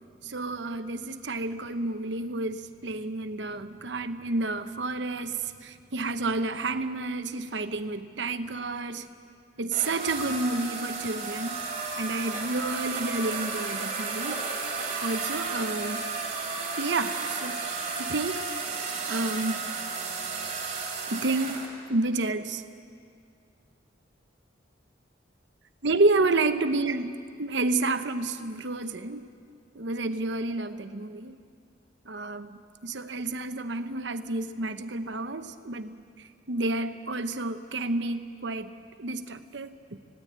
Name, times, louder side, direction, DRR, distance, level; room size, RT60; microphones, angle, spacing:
voice 1, 0.2-9.1 9.6-11.6 12.0-14.4 15.0-16.0 16.8-17.6 18.0-18.5 19.1-19.6 21.1-22.6 25.8-29.3 29.7-31.4 32.0-38.7 39.0-39.7, right 2 dB, 65° right, 10 dB, 0.9 m, -30 dB
sound 1, 9.7-21.7, right 4 dB, 35° right, 3.1 m, -33 dB
19.0 x 16.5 x 8.8 m, 2.3 s
head